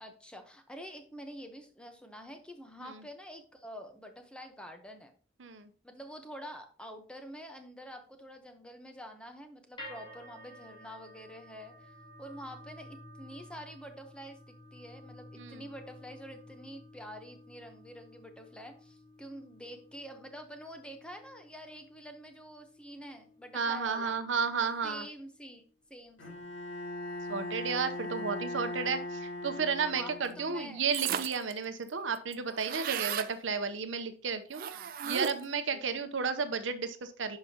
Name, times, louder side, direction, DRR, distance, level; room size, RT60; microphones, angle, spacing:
voice 1, 0.0-5.1 5.8-11.9 12.2-24.2 24.8-25.6 25.9-26.5 29.9-30.8 34.7-34.9 35.7-36.0, equal, 5° left, 5 dB, 0.8 m, -47 dB
sound 1, 9.8-26.0, left 1 dB, 25° left, 2.2 m, -53 dB
voice 2, 23.5-25.1 27.3-34.6 35.0-37.4, right 5 dB, 80° right, 10 dB, 0.7 m, -33 dB
Bowed string instrument, 26.2-30.7, left 1 dB, 85° left, 2.7 m, -39 dB
sound 2, 30.9-31.5 31.9-32.0 32.2-33.3 34.5-35.6, right 9 dB, 45° right, 0.3 m, -35 dB
11.0 x 4.8 x 2.8 m, 0.42 s
head